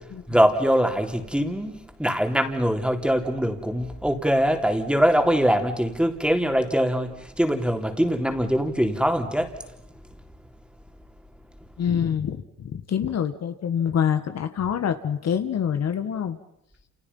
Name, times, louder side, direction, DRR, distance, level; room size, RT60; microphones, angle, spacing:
voice 1, 0.0-9.6, equal, 5° right, 5 dB, 3.6 m, -23 dB
voice 2, 11.8-16.4, left 8 dB, 60° left, 8 dB, 1.8 m, -26 dB
29.0 x 28.5 x 5.6 m, 0.81 s
cardioid pair, 90°, 30 cm